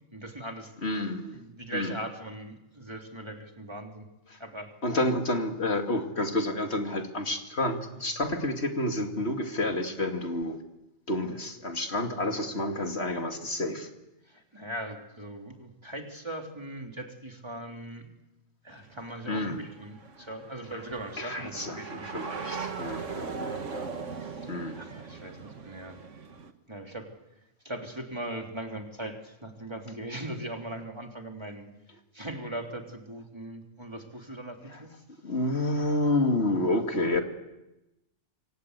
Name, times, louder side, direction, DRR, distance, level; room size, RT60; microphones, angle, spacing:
voice 1, 0.1-0.7 1.3-4.1 4.4-4.7 14.3-18.1 18.6-22.1 24.1-26.0 26.7-27.1 27.6-31.7 32.1-35.0, right 1 dB, 20° right, 2 dB, 3.2 m, -40 dB
voice 2, 0.8-1.4 1.7-1.9 4.3-4.4 4.8-10.6 11.1-13.9 19.3-19.6 21.2-23.9 24.5-24.8 34.7-34.8 35.2-37.2, left 1 dB, 55° left, 4 dB, 2.6 m, -29 dB
sound 1, 18.7-26.5, right 5 dB, 75° right, 2.0 m, -39 dB
27.5 x 24.5 x 8.2 m, 0.96 s
omnidirectional pair, 1.3 m